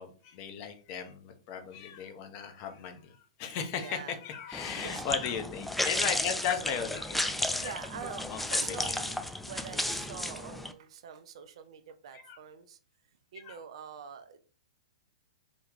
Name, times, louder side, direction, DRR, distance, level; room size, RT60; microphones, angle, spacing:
voice 1, 0.0-7.7 8.3-9.0 12.1-12.4 13.3-13.6, left 7 dB, 40° left, 6 dB, 0.7 m, -37 dB
voice 2, 3.8-4.2 4.7-5.0 7.5-12.8 13.3-14.4, right 7 dB, 60° right, 10 dB, 0.5 m, -45 dB
sound 1, 4.5-10.7, left 1 dB, 5° left, 0.3 m, -33 dB
3.0 x 2.3 x 3.6 m, 0.40 s
hypercardioid pair, 120°, 3 cm